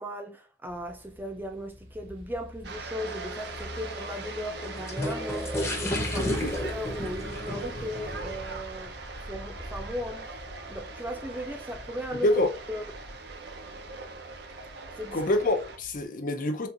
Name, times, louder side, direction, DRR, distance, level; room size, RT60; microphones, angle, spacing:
voice 1, 0.0-8.9 9.2-10.3 10.7-12.3 12.7-12.8 15.0-15.2, equal, 10° right, 0.4 m, -37 dB
sound 1, 0.7-16.0, left 1 dB, 90° right, 1.5 m, -44 dB
sound 2, 2.6-15.8, right 4 dB, 60° right, 0.5 m, -42 dB
sound 3, 3.0-8.3, left 1 dB, 15° left, 0.8 m, -34 dB
voice 2, 6.2-6.5 12.1-12.5 15.1-16.7, left 1 dB, 50° left, 0.6 m, -26 dB
4.3 x 2.4 x 2.5 m
head